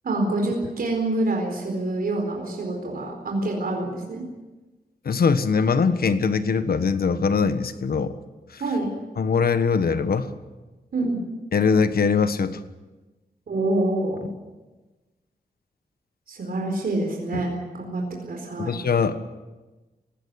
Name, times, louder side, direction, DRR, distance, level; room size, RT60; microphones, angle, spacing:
voice 1, 0.0-4.2 8.6-8.9 10.9-11.2 13.5-14.3 16.3-18.7, right 2 dB, 75° right, 1 dB, 4.3 m, -26 dB
voice 2, 5.0-8.2 8.5-8.6 9.2-10.3 11.5-12.6 17.3-17.4 18.6-19.2, left 5 dB, 80° left, 11 dB, 1.4 m, -22 dB
19.0 x 16.5 x 9.7 m, 1.2 s
wide cardioid pair, 85°, 15 cm